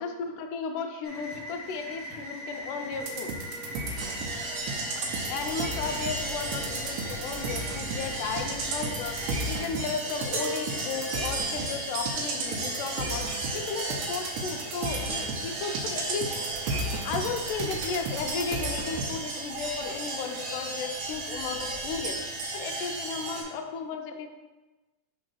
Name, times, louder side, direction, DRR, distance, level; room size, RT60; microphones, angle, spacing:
voice 1, 0.0-3.3 4.8-13.3 13.5-16.5 17.0-24.3, left 5 dB, 80° left, 4 dB, 2.2 m, -34 dB
sound 1, 1.0-9.4, equal, 10° right, 0.7 m, -40 dB
sound 2, 3.0-19.2, right 2 dB, 80° right, 2.3 m, -35 dB
sound 3, 4.0-23.4, right 2 dB, 65° right, 1.7 m, -35 dB
5.2 x 3.8 x 5.6 m, 1.1 s
omnidirectional pair, 3.7 m